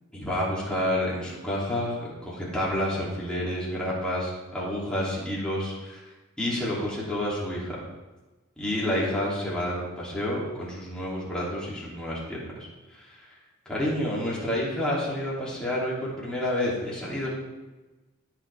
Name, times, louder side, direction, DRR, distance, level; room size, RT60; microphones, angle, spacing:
voice 1, 0.1-6.0 6.4-7.8 8.6-12.4 12.9-13.2 13.7-17.3, left 1 dB, 5° left, -7 dB, 2.9 m, -29 dB
16.5 x 5.9 x 3.5 m, 1.2 s
head